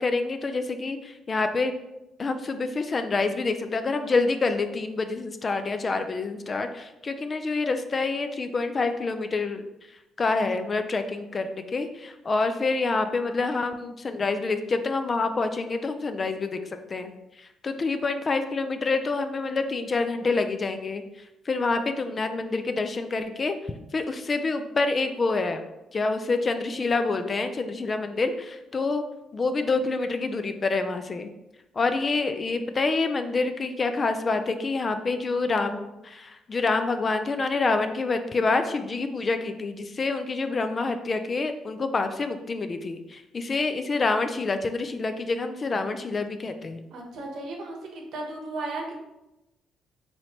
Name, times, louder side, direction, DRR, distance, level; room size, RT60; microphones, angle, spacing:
voice 1, 0.0-1.7 2.2-9.6 10.2-16.6 16.9-17.1 17.6-21.0 21.5-23.6 23.9-25.6 25.9-29.0 29.3-31.3 31.8-46.8, left 3 dB, 35° left, 8 dB, 0.3 m, -27 dB
voice 2, 46.9-49.0, right 2 dB, 75° right, 1 dB, 0.9 m, -35 dB
4.1 x 3.1 x 2.9 m, 0.95 s
cardioid pair, 95°, 0 cm